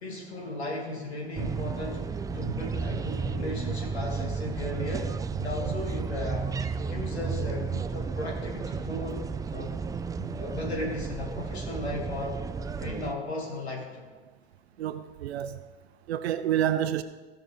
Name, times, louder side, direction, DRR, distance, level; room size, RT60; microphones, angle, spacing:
voice 1, 0.0-5.1 5.4-6.5 6.7-9.2 9.5-9.8 10.2-12.4 12.8-14.0, left 2 dB, 85° left, 2.5 m, -36 dB
sound 1, 1.4-13.1, right 5 dB, 10° right, 0.3 m, -33 dB
voice 2, 14.8-15.7 16.1-17.0, right 11 dB, 80° right, 0.5 m, -28 dB
16.5 x 5.8 x 3.5 m
hypercardioid pair, 80°, 32 cm